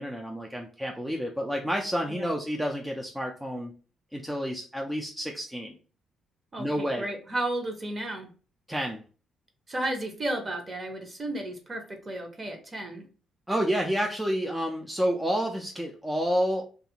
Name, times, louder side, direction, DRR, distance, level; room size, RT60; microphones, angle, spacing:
voice 1, 0.0-3.7 4.1-5.8 6.6-7.1 8.7-9.0 13.5-16.6, equal, 5° right, 1 dB, 0.4 m, -29 dB
voice 2, 6.5-8.3 9.7-13.1, right 1 dB, 35° right, 4 dB, 0.8 m, -33 dB
2.6 x 2.4 x 2.8 m, 0.37 s
cardioid pair, 90°, 0 cm